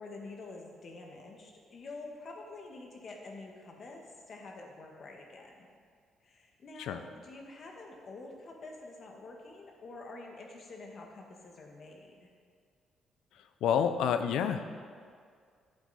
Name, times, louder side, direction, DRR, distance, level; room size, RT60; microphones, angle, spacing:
voice 1, 0.0-5.7 6.2-12.3, left 3 dB, 50° left, 1 dB, 1.7 m, -47 dB
voice 2, 13.6-14.7, left 8 dB, 85° left, 9 dB, 0.6 m, -28 dB
11.5 x 7.9 x 4.2 m, 2.1 s
cardioid pair, 90°, 0 cm